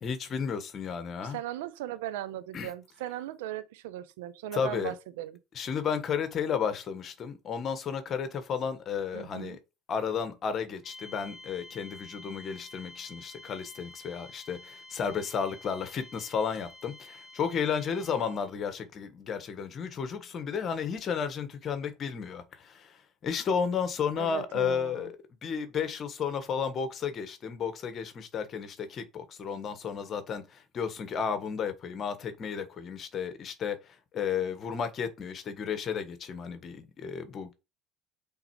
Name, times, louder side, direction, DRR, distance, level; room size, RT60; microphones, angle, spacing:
voice 1, 0.0-1.4 2.5-2.7 4.5-4.9 5.5-9.6 9.9-23.0 23.2-25.1 25.4-33.8 34.1-37.5, left 6 dB, 45° left, 1.4 m, -33 dB
voice 2, 1.2-5.4 9.1-9.6 24.2-25.1, right 13 dB, 80° right, 0.7 m, -38 dB
sound 1, 10.8-18.5, left 2 dB, 10° right, 3.6 m, -49 dB
8.0 x 3.7 x 3.2 m
hypercardioid pair, 70°, 0 cm